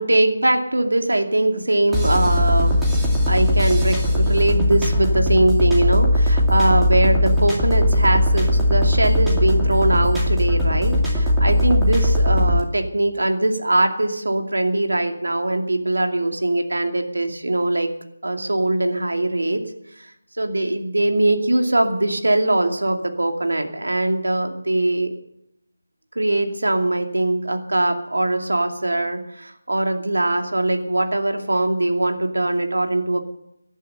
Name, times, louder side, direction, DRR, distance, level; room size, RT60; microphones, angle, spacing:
voice 1, 0.0-2.8 3.3-17.9 18.2-19.6 20.0-20.1 20.4-25.1 26.1-33.2, right 1 dB, 85° right, 4 dB, 2.5 m, -21 dB
sound 1, 1.9-12.6, left 1 dB, 5° right, 2.4 m, -19 dB
18.5 x 11.0 x 6.8 m, 0.80 s
figure-of-eight pair, 165°, 0 cm